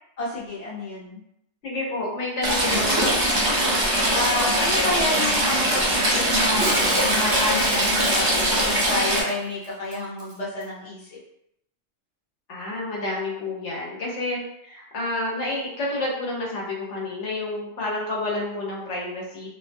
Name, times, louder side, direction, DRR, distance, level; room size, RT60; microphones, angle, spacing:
voice 1, 0.2-1.2 4.1-11.2, left 2 dB, 35° left, -7 dB, 0.8 m, -30 dB
voice 2, 1.6-3.2 12.5-14.4 14.6-19.5, left 2 dB, 80° left, -3 dB, 1.0 m, -29 dB
Stream / Trickle dribble, 2.4-9.2, right 1 dB, 35° right, 0.3 m, -21 dB
Shatter, 6.6-9.3 9.6-9.7 9.9-10.3 10.6-10.7, right 2 dB, 70° right, 0.9 m, -32 dB
2.5 x 2.2 x 2.6 m, 0.79 s
omnidirectional pair, 1.2 m